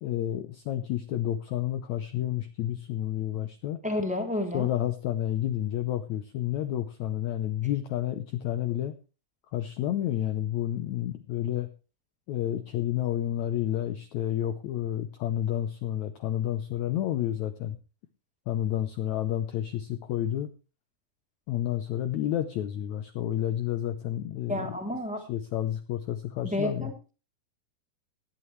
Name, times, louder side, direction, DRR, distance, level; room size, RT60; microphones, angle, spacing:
voice 1, 0.0-3.8 4.5-8.9 9.5-11.7 12.3-17.8 18.5-20.5 21.5-24.7 25.2-26.9, left 12 dB, 85° left, 10 dB, 1.6 m, -30 dB
voice 2, 3.8-4.7 24.5-25.2 26.5-27.1, left 1 dB, ahead, 3 dB, 2.2 m, -30 dB
17.0 x 11.0 x 3.2 m, 0.33 s
omnidirectional pair, 4.4 m